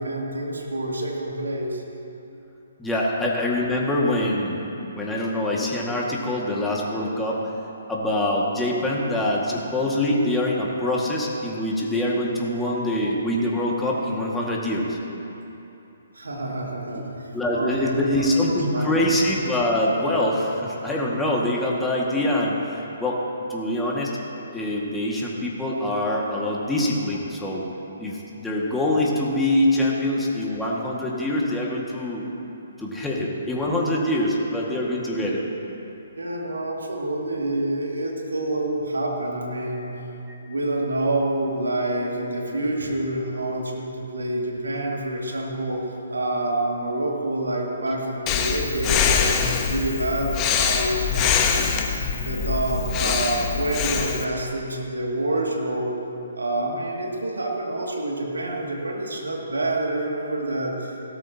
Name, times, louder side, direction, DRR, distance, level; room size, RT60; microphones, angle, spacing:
voice 1, 0.0-1.8 16.1-19.0 36.1-39.9 40.4-45.8 46.1-55.9 56.4-60.9, right 1 dB, 85° right, -1 dB, 2.3 m, -27 dB
voice 2, 2.8-4.6 4.9-7.4 7.9-15.0 16.9-17.0 17.3-23.2 23.5-24.1 24.5-27.7 28.0-32.2 32.8-35.4, left 1 dB, 5° left, -4 dB, 1.9 m, -24 dB
Breathing, 48.3-54.2, left 6 dB, 25° left, 0.9 m, -24 dB
17.0 x 13.0 x 2.9 m, 2.9 s
figure-of-eight pair, 135°, 0 cm